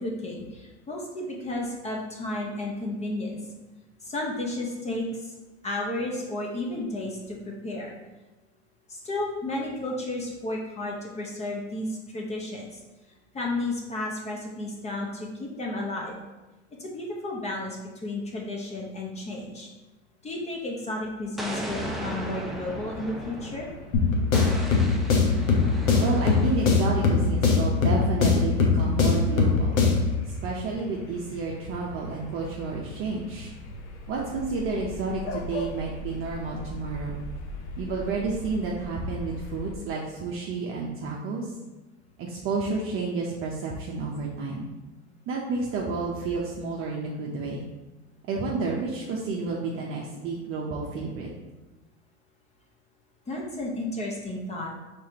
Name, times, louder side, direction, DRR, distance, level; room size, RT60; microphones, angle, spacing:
voice 1, 0.0-3.4 4.0-5.3 5.6-7.9 8.9-12.8 13.3-16.1 16.8-17.8 18.0-19.7 20.2-23.7 53.3-54.7, left 2 dB, 20° left, -1 dB, 0.8 m, -32 dB
Explosion, 21.4-23.8 24.3-26.9, equal, ahead, 0.4 m, -36 dB
sound 1, 21.6-39.8, left 2 dB, 90° left, 0.8 m, -40 dB
sound 2, 23.9-30.2, left 4 dB, 50° left, 1.0 m, -22 dB
voice 2, 26.0-29.8 30.4-33.5 34.1-37.2 37.8-41.5 42.2-44.7 45.3-47.6 48.3-51.3, right 3 dB, 40° right, -3 dB, 0.7 m, -30 dB
4.7 x 3.4 x 2.8 m, 1.2 s
hypercardioid pair, 105°, 34 cm